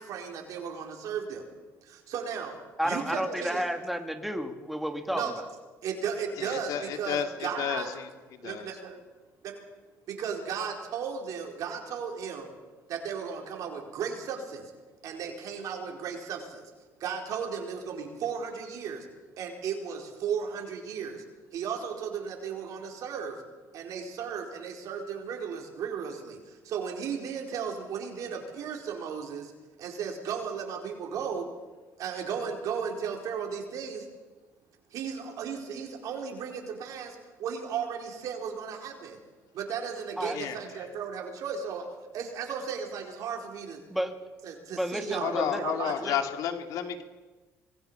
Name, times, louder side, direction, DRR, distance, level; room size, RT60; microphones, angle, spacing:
voice 1, 0.0-1.5 1.8-3.6 5.1-5.3 5.8-7.9 8.4-9.0 9.4-9.6 10.1-12.5 12.9-14.7 15.0-16.7 17.0-19.1 19.4-21.2 21.5-23.4 23.7-29.5 29.8-31.5 32.0-34.1 34.9-39.2 39.5-41.8 42.1-43.8 44.4-45.9, right 7 dB, 70° right, 2 dB, 4.5 m, -35 dB
voice 2, 2.8-5.3 40.2-40.4 43.9-44.1 44.7-45.6 46.0-46.2, equal, ahead, 5 dB, 2.4 m, -31 dB
voice 3, 6.4-8.1 8.4-8.7 40.3-40.6 45.2-47.0, left 9 dB, 75° left, 6 dB, 2.2 m, -31 dB
26.0 x 20.5 x 5.7 m, 1.3 s
cardioid pair, 105°, 6 cm